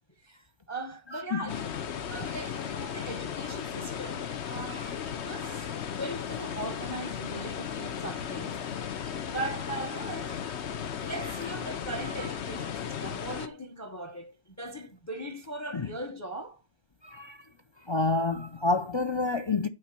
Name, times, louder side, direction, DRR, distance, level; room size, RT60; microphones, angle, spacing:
voice 1, 0.2-1.7 2.1-8.6 8.9-10.5 11.0-16.6, right 1 dB, 15° left, 0.9 m, -39 dB
voice 2, 1.1-1.6 4.7-4.9 5.4-5.7 15.7-15.9 17.0-17.4 17.9-19.7, left 3 dB, 35° left, 0.4 m, -29 dB
sound 1, 1.5-13.5, left 8 dB, 65° left, 1.1 m, -36 dB
8.9 x 4.6 x 6.7 m
omnidirectional pair, 1.2 m